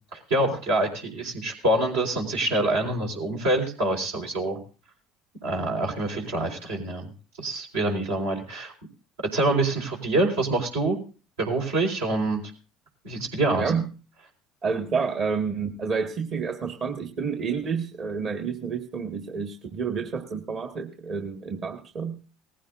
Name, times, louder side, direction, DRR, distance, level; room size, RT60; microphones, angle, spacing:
voice 1, 0.1-4.6 5.4-7.1 7.4-8.7 9.3-11.0 11.4-12.4 13.0-13.7, right 2 dB, 85° right, 0 dB, 4.3 m, -26 dB
voice 2, 14.6-22.2, right 5 dB, 50° right, 5 dB, 1.7 m, -29 dB
19.0 x 15.5 x 2.6 m, 0.35 s
hypercardioid pair, 75°, 0 cm